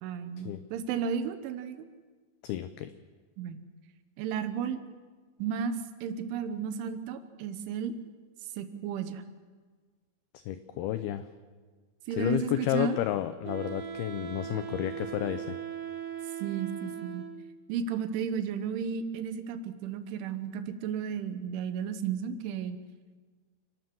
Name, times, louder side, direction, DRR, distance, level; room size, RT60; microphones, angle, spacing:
voice 1, 0.0-1.9 3.4-3.6 4.2-4.8 5.4-7.9 8.6-9.2 12.1-13.0 16.4-17.3 17.7-22.8, right 7 dB, 85° right, 10 dB, 3.6 m, -33 dB
voice 2, 2.4-2.9 10.3-11.3 12.1-15.6, left 12 dB, 85° left, 11 dB, 2.2 m, -31 dB
Wind instrument woodwind instrument, 13.4-17.6, right 9 dB, 70° right, 4.3 m, -39 dB
29.0 x 12.0 x 7.7 m, 1.5 s
omnidirectional pair, 5.4 m